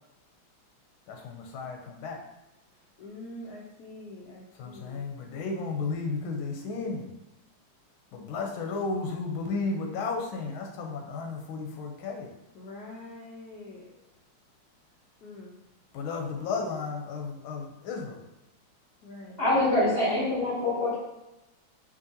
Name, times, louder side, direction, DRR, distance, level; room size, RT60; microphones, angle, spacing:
voice 1, 1.1-2.2 4.5-7.1 8.1-12.3 15.9-18.2, left 4 dB, 85° left, 2 dB, 1.5 m, -33 dB
voice 2, 3.0-5.0 12.5-13.9 15.2-15.5 19.0-19.4, left 1 dB, 70° left, -2 dB, 1.0 m, -44 dB
voice 3, 19.4-21.0, left 1 dB, 35° left, -9 dB, 1.1 m, -25 dB
5.2 x 2.8 x 2.7 m, 0.95 s
omnidirectional pair, 2.2 m